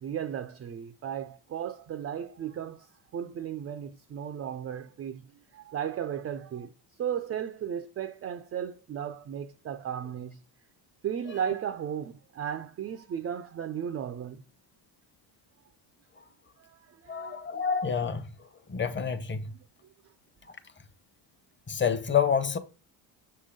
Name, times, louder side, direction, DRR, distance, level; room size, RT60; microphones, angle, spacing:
voice 1, 0.0-2.9 3.1-5.2 5.5-6.7 7.0-10.4 11.0-14.4 16.6-17.6, right 9 dB, 30° right, 0.4 m, -35 dB
voice 2, 17.1-18.2 18.7-19.4 21.7-22.6, left 7 dB, 25° left, 0.9 m, -27 dB
6.6 x 3.8 x 5.1 m
supercardioid pair, 85°, 49 cm